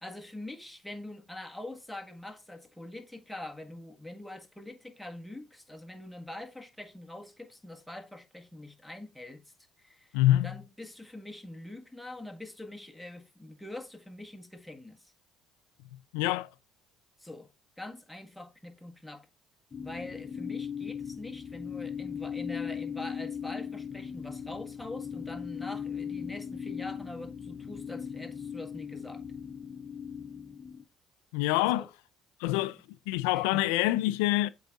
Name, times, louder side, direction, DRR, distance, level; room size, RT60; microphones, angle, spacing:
voice 1, 0.0-10.2 10.4-15.1 17.2-17.5 17.8-19.3 19.8-29.2 31.6-31.9 32.5-32.7 33.3-33.6 33.9-34.1, left 1 dB, 5° left, 1.6 m, -44 dB
voice 2, 10.1-10.5 16.1-16.5 31.3-31.9 32.4-32.8 33.1-34.5, left 16 dB, 85° left, 0.3 m, -26 dB
sound 1, 19.7-30.8, left 7 dB, 30° left, 0.8 m, -38 dB
7.9 x 4.6 x 3.9 m
supercardioid pair, 65°, 0 cm